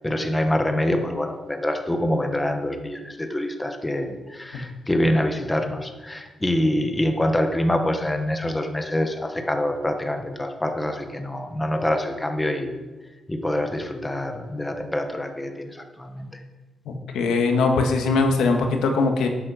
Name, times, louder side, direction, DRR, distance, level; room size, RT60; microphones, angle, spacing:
voice 1, 0.0-12.8 13.3-16.4, left 1 dB, 10° left, 5 dB, 0.9 m, -25 dB
voice 2, 16.9-19.3, left 3 dB, 90° left, 3 dB, 1.7 m, -21 dB
11.0 x 8.5 x 6.5 m, 1.2 s
cardioid pair, 175°, 0 cm